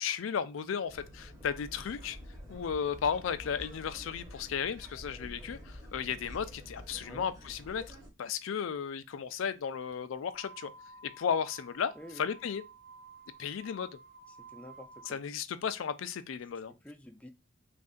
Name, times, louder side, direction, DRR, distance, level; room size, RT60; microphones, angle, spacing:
voice 1, 0.0-2.2 2.5-10.7 11.2-12.6 13.4-13.9 15.1-16.7, left 7 dB, 85° left, 0.4 m, -34 dB
sound 1, 0.9-8.1, left 1 dB, 20° right, 1.0 m, -48 dB
sound 2, 10.2-15.2, right 3 dB, 45° right, 0.9 m, -53 dB
voice 2, 12.0-12.3 14.3-15.2 16.7-17.3, left 1 dB, 5° left, 0.3 m, -49 dB
3.2 x 2.6 x 3.7 m
head